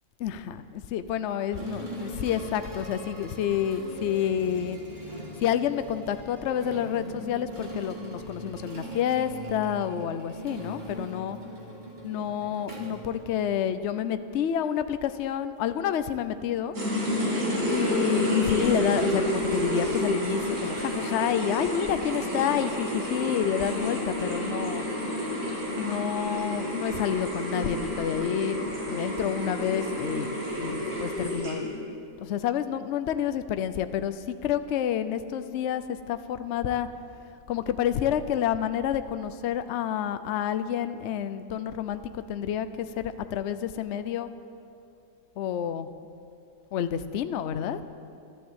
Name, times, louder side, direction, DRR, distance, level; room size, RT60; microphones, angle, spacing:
voice 1, 0.2-4.8 5.4-11.4 12.0-16.8 17.7-24.9 25.7-30.3 30.6-31.7 32.2-36.9 37.5-44.3 45.4-45.9 46.7-47.8, left 9 dB, 60° left, 11 dB, 0.8 m, -29 dB
sound 1, 1.5-13.8, right 1 dB, 30° right, 2.4 m, -41 dB
sound 2, 16.7-31.8, equal, 70° right, 3.1 m, -29 dB
12.5 x 12.0 x 8.0 m, 2.5 s
omnidirectional pair, 1.7 m